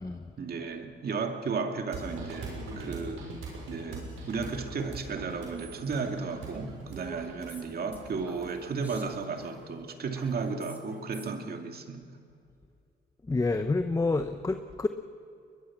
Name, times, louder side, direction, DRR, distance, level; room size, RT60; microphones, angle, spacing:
voice 1, 0.4-3.3 3.7-12.1, right 4 dB, 50° right, 5 dB, 2.4 m, -34 dB
sound 1, 1.9-9.5, right 2 dB, 80° right, 6.7 m, -42 dB
Female speech woman speaking, 6.9-11.5, right 1 dB, 10° right, 3.6 m, -49 dB
voice 2, 13.3-14.9, left 3 dB, 15° left, 8 dB, 0.9 m, -28 dB
22.5 x 21.5 x 6.0 m, 2.5 s
cardioid pair, 90°, 20 cm